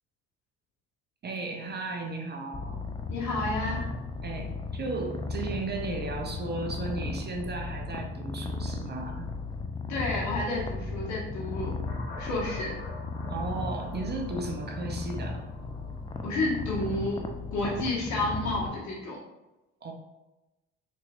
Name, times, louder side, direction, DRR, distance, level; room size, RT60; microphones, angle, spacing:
voice 1, 1.2-2.8 4.2-9.3 13.3-15.5 19.8-19.9, right 3 dB, 30° right, 3 dB, 0.6 m, -35 dB
Purr, 2.5-18.7, left 3 dB, 15° left, 0.4 m, -35 dB
voice 2, 3.1-3.8 9.9-11.7 12.2-12.7 16.2-17.2 17.5-19.2, left 2 dB, 55° left, -3 dB, 1.4 m, -30 dB
sound 1, 11.9-17.5, left 2 dB, 80° left, 0.9 m, -48 dB
4.1 x 3.1 x 2.5 m, 1.0 s
hypercardioid pair, 60°, 33 cm